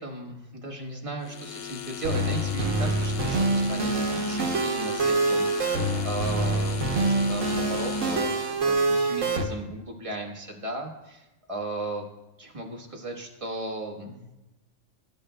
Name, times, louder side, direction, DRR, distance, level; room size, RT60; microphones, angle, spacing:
voice 1, 0.0-8.4 8.6-12.1 12.4-14.4, right 2 dB, 25° right, 0 dB, 1.3 m, -36 dB
sound 1, 1.2-8.7, left 10 dB, 80° left, 1.0 m, -37 dB
sound 2, 2.0-9.4, right 2 dB, 85° right, 1.3 m, -25 dB
16.5 x 8.0 x 2.2 m, 0.98 s
omnidirectional pair, 1.3 m